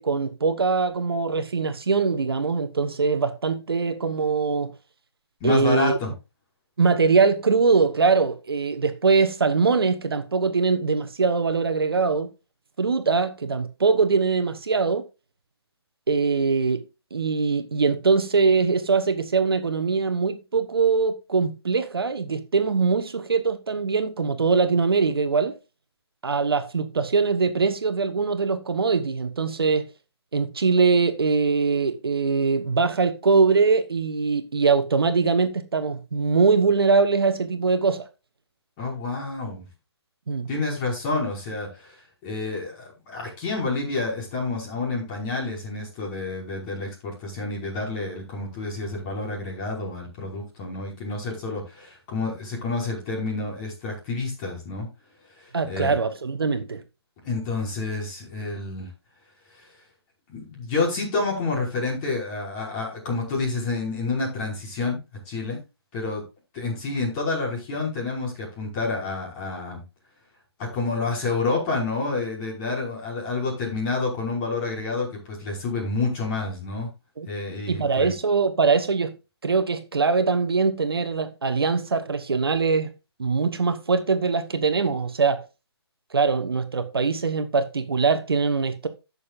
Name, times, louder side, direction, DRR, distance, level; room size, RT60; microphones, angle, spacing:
voice 1, 0.0-4.7 5.4-6.0 6.8-12.3 12.8-15.0 16.1-16.8 17.1-25.5 26.2-29.9 30.3-38.0 40.3-40.5 55.5-56.8 77.2-77.3 77.7-79.1 79.4-82.9 83.2-85.4 86.1-88.9, right 4 dB, 60° right, 1.3 m, -22 dB
voice 2, 5.4-6.1 38.8-39.7 40.5-42.0 42.2-54.9 55.4-56.0 57.2-58.9 60.3-65.0 65.3-65.6 65.9-66.2 66.5-69.8 70.6-76.9 77.3-78.1, left 3 dB, 25° left, 5.4 m, -29 dB
16.0 x 6.8 x 2.6 m
figure-of-eight pair, 140°, 14 cm